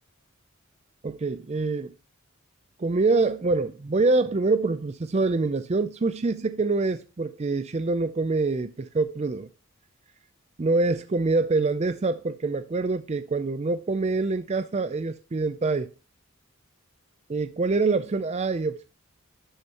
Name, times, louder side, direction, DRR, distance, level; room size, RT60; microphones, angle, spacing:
voice 1, 1.0-1.9 2.8-9.5 10.6-15.9 17.3-18.8, right 3 dB, 30° right, 0.4 m, -25 dB
12.0 x 9.5 x 2.9 m
head